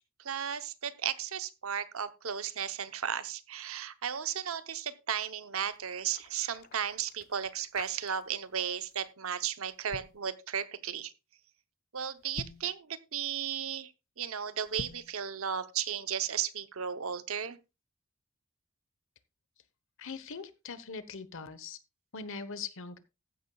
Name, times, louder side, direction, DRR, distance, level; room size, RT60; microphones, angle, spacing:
voice 1, 0.2-11.1 11.9-17.6, right 8 dB, 70° right, 0.9 m, -35 dB
sound 1, 5.6-8.5 8.8-9.1 9.7-10.2 12.2-12.7 14.7-15.1, left 4 dB, 45° left, 0.5 m, -47 dB
voice 2, 20.0-21.8 22.1-23.0, left 5 dB, 60° left, 1.1 m, -41 dB
14.5 x 10.5 x 2.3 m
head